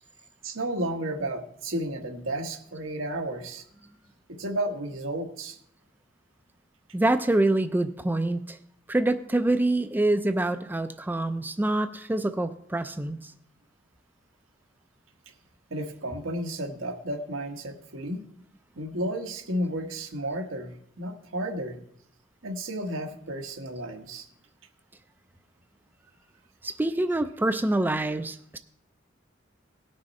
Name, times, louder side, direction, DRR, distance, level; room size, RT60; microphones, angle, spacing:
voice 1, 0.4-3.6 4.4-5.6 15.7-18.2 18.8-21.8 22.4-24.3, right 1 dB, 90° right, 3 dB, 1.3 m, -32 dB
voice 2, 6.9-8.6 8.9-13.3 26.6-28.6, right 2 dB, 10° right, 9 dB, 0.4 m, -26 dB
18.0 x 6.3 x 4.2 m, 0.74 s
head